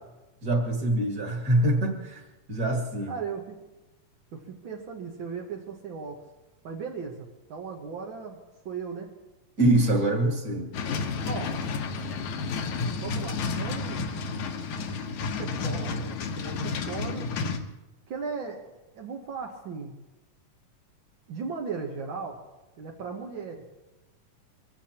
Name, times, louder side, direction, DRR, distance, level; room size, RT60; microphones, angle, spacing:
voice 1, 0.4-2.2 2.5-3.2 9.6-10.7, right 1 dB, 30° right, 1 dB, 1.9 m, -24 dB
voice 2, 3.1-3.6 4.3-6.2 6.6-8.4 8.6-9.1 11.2-11.6 13.0-14.1 14.9-17.3 18.1-20.0 21.3-22.4 22.8-23.6, right 5 dB, 65° right, 0 dB, 1.2 m, -37 dB
sound 1, 10.7-17.6, left 4 dB, 70° left, 2.3 m, -31 dB
24.0 x 16.0 x 2.9 m, 1.1 s
omnidirectional pair, 3.8 m